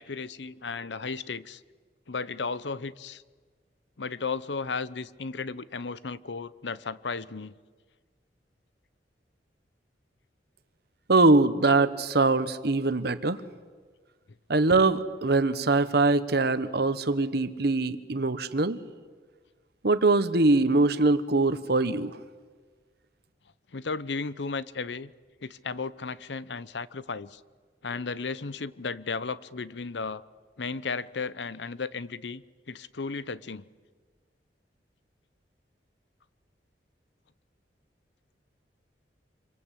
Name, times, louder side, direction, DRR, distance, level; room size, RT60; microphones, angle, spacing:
voice 1, 0.0-1.6 2.1-3.2 4.0-7.5 21.6-21.7 23.7-25.1 25.4-27.4 27.8-30.2 30.6-32.4 32.7-33.6, left 4 dB, 90° left, 17 dB, 0.8 m, -34 dB
voice 2, 11.1-13.4 14.5-18.8 19.8-22.1, right 3 dB, 65° right, 12 dB, 1.3 m, -23 dB
26.5 x 24.5 x 8.4 m, 1.5 s
head